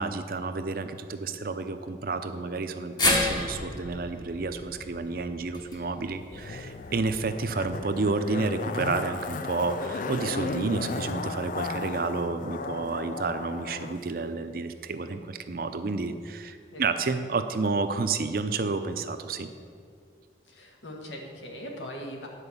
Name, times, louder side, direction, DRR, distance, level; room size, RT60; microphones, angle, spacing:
voice 1, 0.0-19.5, right 3 dB, 50° right, 9 dB, 0.5 m, -30 dB
sound 1, 3.0-7.2 7.6-7.7 8.9-9.0, left 2 dB, 25° left, 0.9 m, -31 dB
Zipper (clothing), 6.3-14.0 14.2-14.3, left 4 dB, 45° left, 0.3 m, -35 dB
voice 2, 20.5-22.3, equal, 90° left, 1 dB, 1.5 m, -40 dB
9.8 x 4.8 x 6.9 m, 2.3 s
head